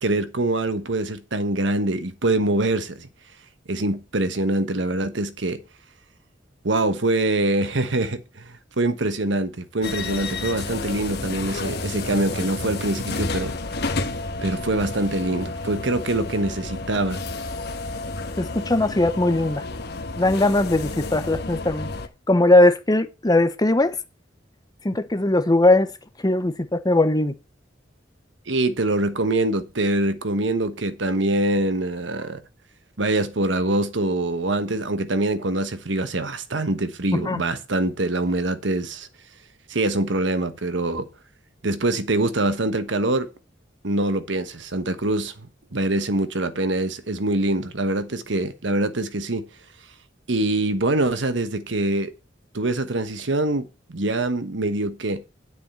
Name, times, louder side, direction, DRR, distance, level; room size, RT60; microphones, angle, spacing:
voice 1, 0.0-3.1 3.7-5.6 6.6-13.5 14.4-17.2 28.5-32.4 33.0-39.1 39.7-41.1 41.6-43.3 43.8-45.5 45.7-49.5 50.3-52.1 52.5-55.2, right 2 dB, 70° right, 1.2 m, -24 dB
sound 1, 9.8-22.1, left 3 dB, 60° left, 1.4 m, -31 dB
voice 2, 18.4-19.6 20.2-21.9 22.3-24.0 24.8-25.9 26.2-27.3 37.1-37.4, left 2 dB, 20° left, 0.9 m, -19 dB
9.9 x 8.3 x 4.3 m
head